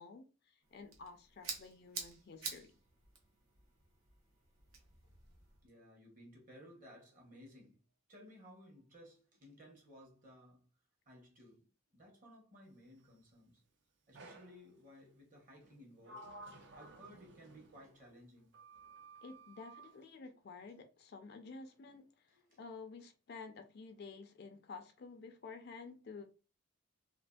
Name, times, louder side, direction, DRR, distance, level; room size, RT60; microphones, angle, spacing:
voice 1, 0.0-2.7 19.2-26.2, left 4 dB, 50° left, 0.4 m, -51 dB
sound 1, 0.6-5.6, right 5 dB, 75° right, 0.8 m, -49 dB
voice 2, 5.6-7.8 8.1-10.7 11.1-11.7 11.9-13.6 14.1-16.4 16.7-18.5 22.3-22.6, equal, 40° right, 0.9 m, -58 dB
Sliding door, 14.1-14.6 15.6-18.0 18.5-19.9, right 2 dB, 55° right, 0.4 m, -55 dB
2.7 x 2.5 x 2.2 m
head